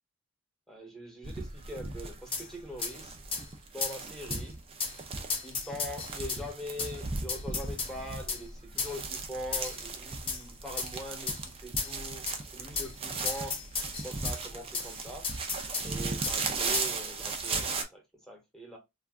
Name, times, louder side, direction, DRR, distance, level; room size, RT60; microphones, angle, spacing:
voice 1, 0.7-3.2 3.7-4.6 5.4-13.6 14.0-15.3 15.8-18.8, equal, ahead, 1.0 m, -42 dB
sound 1, 1.2-17.8, right 3 dB, 30° right, 0.5 m, -37 dB
sound 2, 2.3-2.5 2.8-2.9 3.3-3.4 3.8-4.0 4.3-4.4 4.8-4.9 5.3-6.4 6.8-6.9 7.3-7.9 8.3-8.4 8.8-8.9 9.5-9.8 10.3-10.4 10.8-10.9 11.3-11.4 11.8-11.9 12.3-12.4 12.7-12.9 13.2-14.4 14.7-14.9 15.2-15.9 16.2-16.4 16.7-16.9, left 4 dB, 25° left, 0.7 m, -33 dB
2.5 x 2.2 x 3.5 m
head